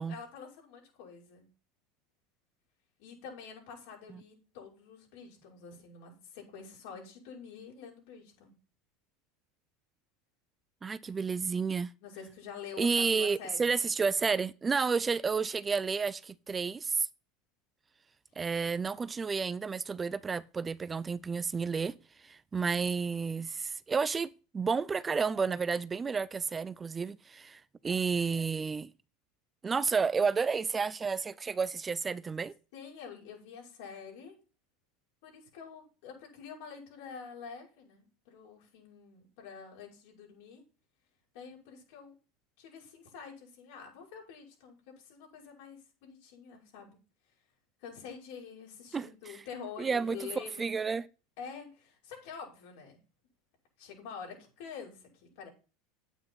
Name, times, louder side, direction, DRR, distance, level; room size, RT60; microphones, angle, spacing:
voice 1, 0.0-1.4 3.0-8.5 11.0-11.1 12.0-13.7 32.7-34.3 35.2-40.6 41.3-42.1 42.6-47.0 47.8-50.6 51.4-53.0 53.8-55.5, left 6 dB, 70° left, 6.0 m, -47 dB
voice 2, 10.8-11.9 12.8-17.1 18.4-21.9 22.2-28.9 29.6-32.5 48.9-49.1 49.8-50.2 50.6-51.1, right 5 dB, 20° right, 0.4 m, -31 dB
9.6 x 9.2 x 4.0 m
supercardioid pair, 140°, 0 cm